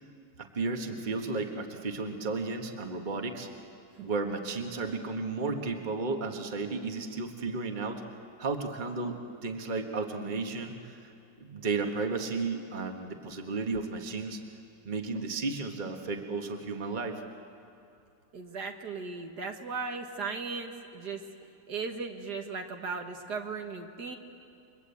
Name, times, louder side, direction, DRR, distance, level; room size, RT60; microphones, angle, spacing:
voice 1, 0.4-3.5 4.0-8.0 8.4-11.1 11.4-14.4 14.8-17.2, right 3 dB, 30° right, 4 dB, 1.6 m, -33 dB
voice 2, 18.3-21.2 21.7-24.2, right 4 dB, 65° right, 4 dB, 2.0 m, -37 dB
30.0 x 23.5 x 8.5 m, 2.6 s
omnidirectional pair, 1.9 m